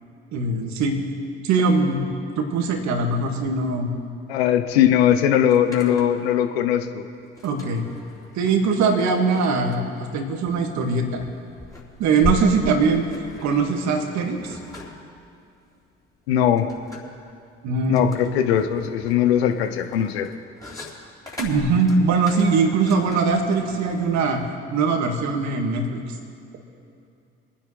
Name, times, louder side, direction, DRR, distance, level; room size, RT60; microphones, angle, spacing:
voice 1, 0.3-1.0 1.4-3.9 7.4-7.9 8.3-11.2 12.0-13.0 13.4-14.6 17.6-18.1 21.4-24.4 24.7-26.0, right 4 dB, 65° right, 3 dB, 1.8 m, -21 dB
voice 2, 4.3-7.0 16.3-16.7 17.9-20.3, left 10 dB, 85° left, 8 dB, 0.7 m, -20 dB
sound 1, 4.7-4.8 5.0-6.3 7.3-24.5, left 2 dB, 10° left, 3.9 m, -38 dB
23.5 x 10.0 x 3.2 m, 2.5 s
hypercardioid pair, 50°, 30 cm